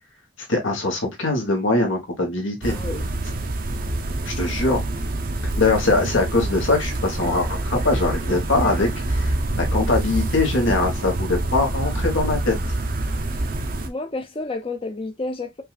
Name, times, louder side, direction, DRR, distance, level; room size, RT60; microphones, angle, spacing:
voice 1, 0.5-2.8 4.2-4.8 5.6-12.6, left 2 dB, 85° left, 1.5 m, -22 dB
sound 1, 2.6-13.9, right 1 dB, 45° right, 0.6 m, -26 dB
voice 2, 2.7-3.0 13.9-15.6, left 2 dB, 30° left, 0.5 m, -30 dB
5.4 x 2.5 x 2.3 m
head